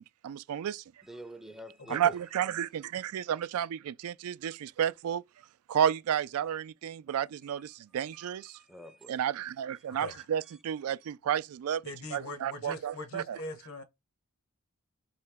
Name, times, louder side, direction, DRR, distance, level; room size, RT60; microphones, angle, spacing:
voice 1, 0.0-0.8 1.9-5.2 5.7-8.6 9.1-11.8 12.1-13.4, right 9 dB, 75° right, 0.3 m, -32 dB
voice 2, 1.0-2.2 7.6-9.2 9.8-9.9 10.4-10.6, equal, ahead, 0.5 m, -50 dB
voice 3, 11.8-13.8, left 1 dB, 70° left, 1.0 m, -41 dB
4.1 x 2.8 x 3.4 m
head